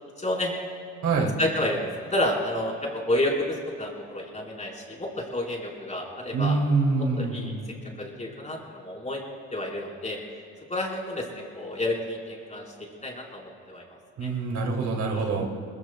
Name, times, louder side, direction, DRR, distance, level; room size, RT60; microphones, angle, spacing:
voice 1, 0.2-0.5 1.4-6.6 7.2-7.5 8.0-9.2 9.5-10.2 10.7-13.8 14.2-14.3 15.1-15.3, left 1 dB, 25° left, -2 dB, 4.3 m, -30 dB
voice 2, 1.0-1.3 6.3-7.6 14.2-15.5, right 3 dB, 70° right, 0 dB, 2.8 m, -25 dB
23.0 x 20.5 x 2.3 m, 2.6 s
cardioid pair, 90°, 30 cm